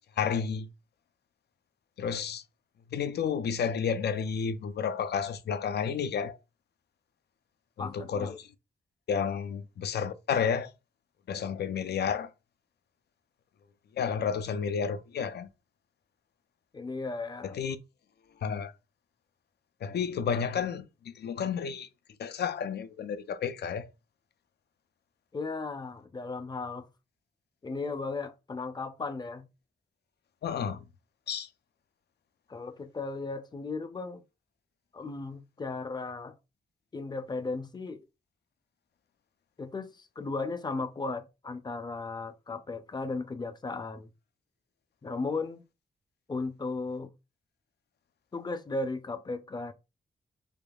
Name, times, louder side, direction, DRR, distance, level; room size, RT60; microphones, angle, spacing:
voice 1, 0.2-0.7 2.0-2.4 2.9-6.4 7.8-8.3 9.1-10.7 11.3-12.3 14.0-15.5 17.4-17.8 18.4-18.7 19.8-21.9 22.2-23.9 30.4-30.8 31.3-31.5, left 7 dB, 80° left, 0.4 m, -31 dB
voice 2, 7.8-8.4 16.7-17.6 25.3-26.9 27.6-29.5 32.5-34.2 34.9-36.3 36.9-38.1 39.6-44.1 45.0-45.6 46.3-47.1 48.3-49.7, left 3 dB, 25° left, 0.4 m, -36 dB
4.0 x 3.5 x 2.3 m
wide cardioid pair, 140°, 17 cm